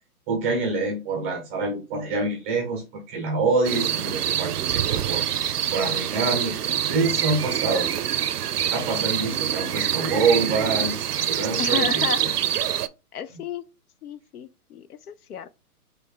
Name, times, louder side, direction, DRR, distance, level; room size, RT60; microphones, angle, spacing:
voice 1, 0.3-8.2 8.7-12.3 13.3-13.4, right 3 dB, 10° right, 0.5 m, -26 dB
sound 1, 3.6-12.9, right 10 dB, 80° right, 0.6 m, -25 dB
voice 2, 9.5-9.8 11.6-12.6 13.1-13.6 14.0-15.5, left 8 dB, 75° left, 0.7 m, -33 dB
5.2 x 2.7 x 3.7 m
hypercardioid pair, 135°, 46 cm